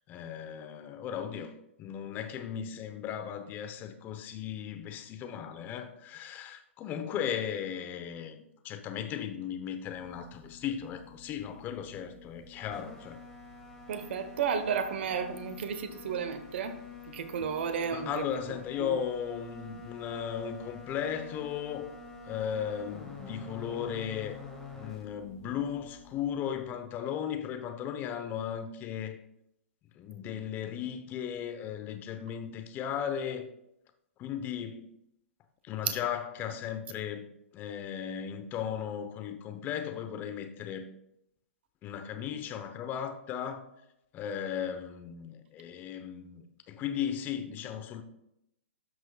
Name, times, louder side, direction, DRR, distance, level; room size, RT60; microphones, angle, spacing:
voice 1, 0.1-1.5 1.8-13.2 17.9-21.9 22.2-24.4 24.7-29.2 30.0-33.5 34.2-34.9 35.6-37.3 37.5-40.9 41.8-43.6 44.1-48.0, left 8 dB, 25° left, 0.9 m, -36 dB
sound 1, 9.8-27.0, left 4 dB, 5° left, 2.0 m, -48 dB
voice 2, 13.9-16.8 17.1-18.2 18.8-19.0 35.8-36.0, right 7 dB, 55° right, 1.1 m, -32 dB
13.0 x 6.1 x 2.4 m
hypercardioid pair, 120°, 7 cm